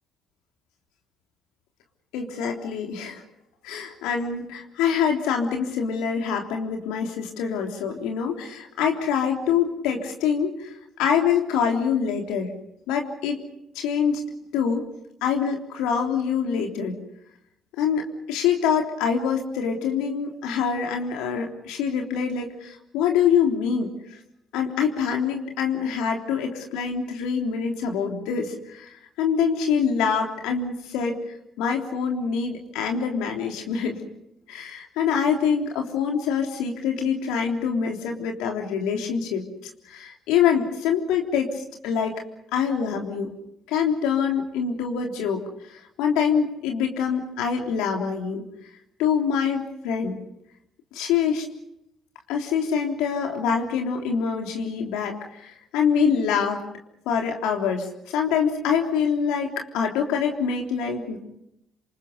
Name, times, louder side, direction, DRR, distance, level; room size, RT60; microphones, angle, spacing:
voice 1, 2.1-3.2 3.6-12.5 12.9-13.4 13.8-14.3 14.5-14.9 15.2-17.0 17.8-23.9 24.5-34.0 34.5-39.5 39.9-42.2 42.5-43.3 43.7-48.4 49.0-50.2 50.9-51.5 52.3-56.6 57.1-61.2, left 7 dB, 75° left, 2 dB, 3.5 m, -25 dB
28.5 x 27.0 x 5.4 m, 0.80 s
hypercardioid pair, 50°, 0 cm